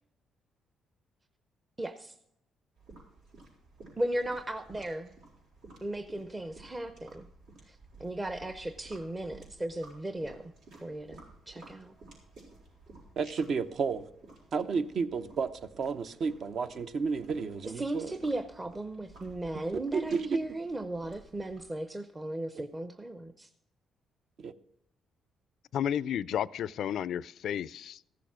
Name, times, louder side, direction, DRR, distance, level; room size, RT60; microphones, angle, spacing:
sound 1, 2.8-21.8, right 3 dB, 85° right, 5.2 m, -55 dB
voice 1, 4.0-5.1 5.8-7.3 7.7-10.4 10.8-11.9 17.8-23.5, right 1 dB, 20° right, 10 dB, 0.7 m, -36 dB
voice 2, 13.2-14.1 14.5-18.1 19.9-20.4 22.5-22.6 24.4-24.5, right 5 dB, 60° right, 11 dB, 0.8 m, -32 dB
voice 3, 25.7-28.0, left 9 dB, 70° left, 19 dB, 0.3 m, -32 dB
14.5 x 6.9 x 6.1 m, 0.77 s
cardioid pair, 90°, 0 cm